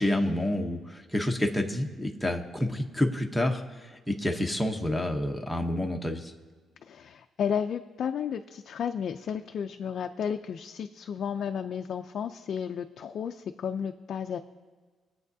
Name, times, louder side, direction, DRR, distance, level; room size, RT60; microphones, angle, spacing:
voice 1, 0.0-6.3, left 1 dB, 5° left, 2 dB, 0.8 m, -29 dB
voice 2, 6.8-14.4, left 7 dB, 45° left, 6 dB, 0.4 m, -33 dB
23.0 x 8.3 x 2.7 m, 1.4 s
cardioid pair, 175°, 0 cm